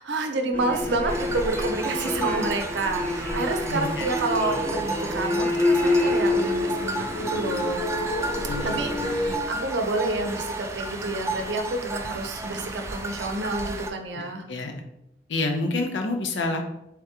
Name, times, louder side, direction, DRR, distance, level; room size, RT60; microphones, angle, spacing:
voice 1, 0.0-7.9 8.6-14.5, right 2 dB, 75° right, 5 dB, 0.6 m, -29 dB
sound 1, 0.5-9.4, left 2 dB, 10° left, 0.7 m, -27 dB
sound 2, 1.1-13.9, right 3 dB, 15° right, 0.3 m, -33 dB
voice 2, 3.7-4.1 8.5-8.8 14.1-14.2 14.5-14.8 15.3-16.6, left 2 dB, 80° left, 4 dB, 0.6 m, -28 dB
3.6 x 3.5 x 2.8 m, 0.82 s
head